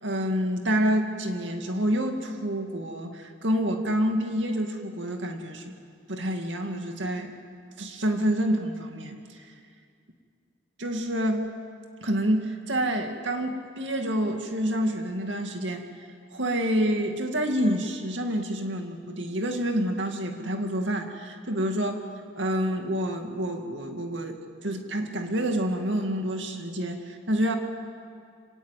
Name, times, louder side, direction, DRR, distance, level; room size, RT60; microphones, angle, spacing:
voice 1, 0.0-5.7 6.1-7.3 7.8-9.2 10.8-11.5 12.0-15.8 16.3-22.0 22.4-27.6, equal, 80° right, 4 dB, 2.3 m, -28 dB
26.0 x 18.5 x 8.3 m, 2.2 s
head